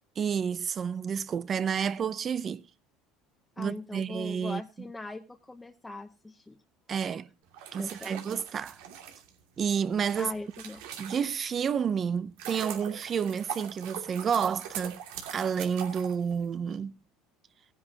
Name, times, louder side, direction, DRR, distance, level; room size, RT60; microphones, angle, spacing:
voice 1, 0.2-2.6 3.6-4.6 6.9-7.3 7.7-8.8 9.6-10.3 11.0-15.0 15.3-17.0, right 7 dB, 35° right, 0.6 m, -30 dB
voice 2, 3.6-6.6 7.8-8.2 10.2-11.0, left 2 dB, 10° left, 0.8 m, -41 dB
sound 1, 7.5-11.6 12.1-16.8, right 9 dB, 90° right, 2.7 m, -42 dB
17.0 x 10.0 x 2.9 m
cardioid pair, 130°, 0 cm